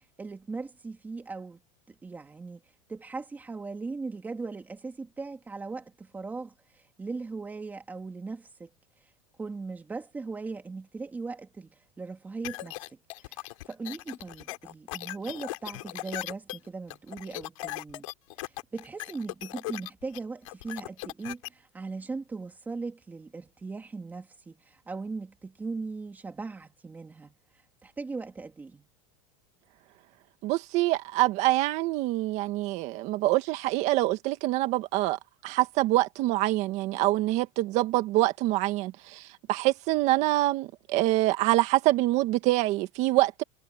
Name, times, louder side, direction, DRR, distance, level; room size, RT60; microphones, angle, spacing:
voice 1, 0.2-1.6 1.9-2.6 2.9-6.5 7.0-8.7 9.4-11.7 12.0-12.8 13.2-18.1 18.4-27.4 27.8-28.9, right 4 dB, 10° right, 3.0 m, -38 dB
sound 1, 12.4-21.5, left 19 dB, 85° left, 3.9 m, -38 dB
voice 2, 30.4-43.4, right 17 dB, 45° right, 2.0 m, -25 dB
supercardioid pair, 165°, 17 cm